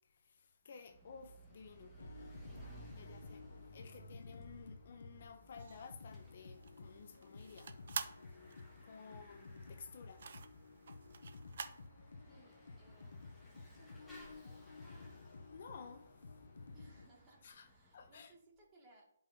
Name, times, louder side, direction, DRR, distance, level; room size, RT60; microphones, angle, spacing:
voice 1, 0.1-2.0 2.9-3.5 3.7-8.0 8.8-10.3 15.5-16.1 17.4-17.7 17.9-18.3, left 5 dB, 50° left, 0.7 m, -54 dB
Bicycle / Mechanisms, 0.7-18.3, right 1 dB, ahead, 1.6 m, -60 dB
sound 1, 2.0-17.1, left 3 dB, 85° left, 0.8 m, -54 dB
sound 2, 5.6-11.9, right 6 dB, 55° right, 0.7 m, -48 dB
voice 2, 12.3-15.1 16.7-19.0, right 1 dB, 20° right, 2.1 m, -66 dB
11.0 x 5.4 x 2.8 m
hypercardioid pair, 165°, 0 cm